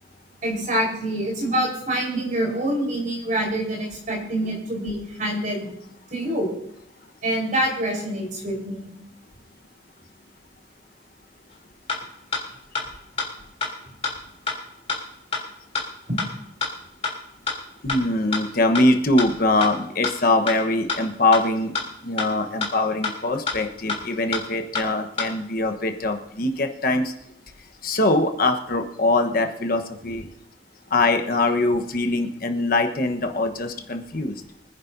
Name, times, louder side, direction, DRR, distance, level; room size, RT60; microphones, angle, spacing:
voice 1, 0.4-5.7 6.1-6.5 7.2-8.9 16.1-16.2 19.5-19.6, right 1 dB, 45° right, -1 dB, 4.5 m, -26 dB
sound 1, 11.5-11.6 11.9-12.0 12.3-12.4 12.7-12.8 13.2-13.3 13.6-13.7 14.0-14.1 14.5-14.6 14.9-15.0 15.3-15.4 15.7-15.8 16.2-16.3 16.6-16.7 17.0-17.1 17.5-17.6 17.9-18.0 18.3-18.4 18.7-18.8 19.2-19.3 19.6-19.7 20.0-20.1 20.5-20.6 20.9-21.0 21.3-21.4 21.7-21.8 22.2-22.3 22.6-22.7 23.0-23.1 23.5-23.6 23.9-24.0 24.3-24.4 24.7-24.8 25.2-25.3, left 4 dB, 35° left, 3.3 m, -25 dB
voice 2, 17.8-21.7 22.0-27.1 27.8-30.3 30.9-34.3, left 2 dB, 55° left, 5 dB, 1.2 m, -22 dB
25.0 x 10.5 x 2.7 m, 0.77 s
head